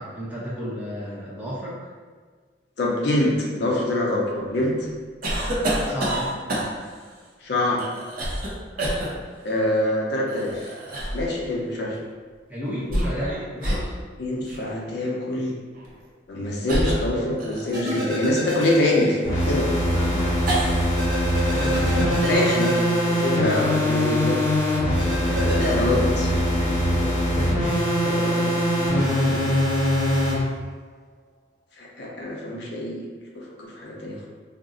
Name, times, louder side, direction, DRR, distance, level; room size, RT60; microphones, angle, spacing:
voice 1, 0.0-1.8 5.7-6.4 12.5-13.9 19.9-20.4 21.5-22.8 25.2-28.2, equal, 10° right, -8 dB, 0.6 m, -33 dB
voice 2, 2.8-4.9 7.4-7.8 9.4-10.7 11.1-11.9 13.2-13.3 14.2-15.6 16.3-19.7 22.2-22.7 23.1-24.4 25.4-26.3 28.0-29.6 31.8-33.1 33.3-34.3, left 1 dB, 60° left, -3 dB, 0.5 m, -25 dB
sound 1, 5.2-7.0 7.8-8.5 8.8-9.1 10.3-11.3 12.7-13.3 13.6-13.9 14.5-14.6 15.7-15.9 16.7-17.9 18.5-21.0 21.2-22.0, right 1 dB, 50° right, 0.6 m, -28 dB
sound 2, 17.7-19.4 19.7-19.8 21.0-23.8 25.0-25.7, equal, 65° right, 0.9 m, -29 dB
sound 3, 19.2-30.4, equal, 20° left, 0.9 m, -22 dB
2.5 x 2.0 x 3.7 m, 1.5 s
head